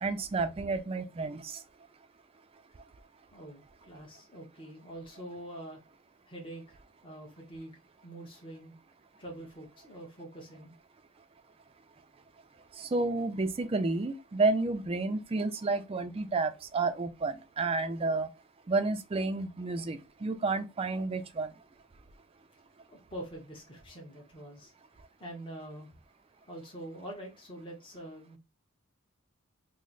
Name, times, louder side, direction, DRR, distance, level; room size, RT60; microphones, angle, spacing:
voice 1, 0.0-1.6 12.8-18.3 18.7-21.5, right 3 dB, 25° right, 0.4 m, -30 dB
voice 2, 3.3-5.8 6.3-6.8 7.0-7.8 8.0-8.7 9.2-10.7 22.9-24.7 25.2-25.9 26.5-28.4, right 1 dB, 25° left, 0.9 m, -45 dB
3.1 x 2.0 x 3.8 m
head